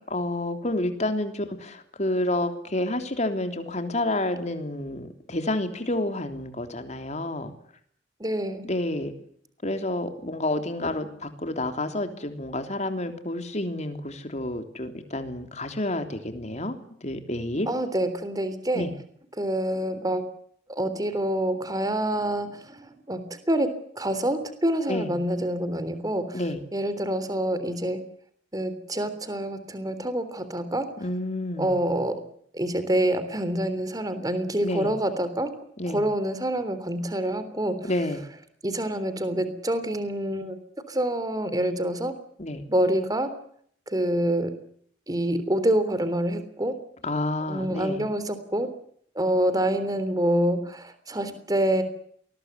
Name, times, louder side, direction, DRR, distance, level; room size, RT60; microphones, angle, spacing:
voice 1, 0.1-7.5 8.6-9.1 9.6-17.7 18.7-18.9 24.9-25.1 26.3-26.6 31.0-31.7 34.6-34.9 35.8-36.0 37.8-38.2 42.4-42.7 47.0-48.0, left 1 dB, 40° left, 7 dB, 3.3 m, -29 dB
voice 2, 8.2-8.6 17.7-18.9 19.4-20.3 20.7-26.4 26.7-28.0 28.5-30.9 31.6-32.2 32.5-35.5 35.9-37.8 38.6-40.6 40.9-42.2 42.7-43.3 43.9-44.5 45.1-46.8 47.5-48.7 49.1-51.8, right 1 dB, 20° right, 12 dB, 3.3 m, -26 dB
28.0 x 21.0 x 8.2 m, 0.65 s
head